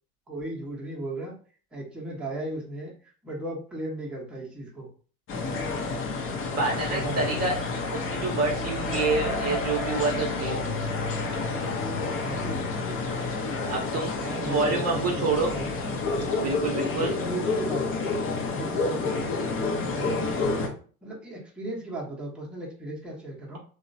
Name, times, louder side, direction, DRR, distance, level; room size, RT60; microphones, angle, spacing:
voice 1, 0.3-1.3 1.7-2.9 3.2-4.9 6.9-7.6 12.2-13.3 14.2-16.0 16.9-18.2 18.5-19.2 19.7-20.7 21.0-23.6, right 1 dB, ahead, -4 dB, 0.8 m, -36 dB
sound 1, 5.3-20.7, left 3 dB, 30° left, 0.6 m, -29 dB
voice 2, 6.5-7.6 7.9-10.6 13.7-14.1 14.5-15.5 16.4-17.1, right 3 dB, 35° right, 0 dB, 0.7 m, -27 dB
2.9 x 2.1 x 2.6 m, 0.41 s
hypercardioid pair, 95°, 44 cm